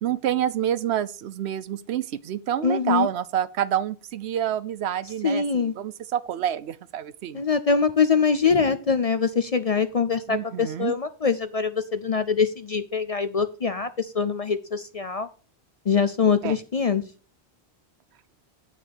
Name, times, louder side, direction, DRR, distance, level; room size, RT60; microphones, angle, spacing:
voice 1, 0.0-7.4 10.3-11.0 16.4-16.6, right 10 dB, 75° right, 0.9 m, -28 dB
voice 2, 2.6-3.1 5.2-5.7 7.3-15.3 15.9-17.0, left 5 dB, 45° left, 0.5 m, -23 dB
9.4 x 4.2 x 7.0 m
omnidirectional pair, 1.1 m